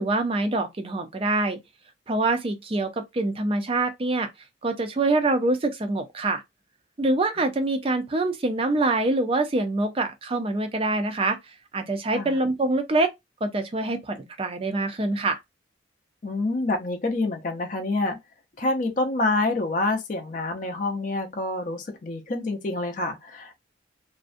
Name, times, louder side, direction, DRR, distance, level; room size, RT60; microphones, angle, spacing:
voice 1, 0.0-1.6 2.1-4.3 4.6-6.4 7.0-11.4 11.7-13.1 13.4-15.4, right 2 dB, 30° right, 0.4 m, -25 dB
voice 2, 16.2-18.2 18.6-23.6, left 2 dB, 40° left, 0.4 m, -27 dB
2.5 x 2.1 x 2.4 m
head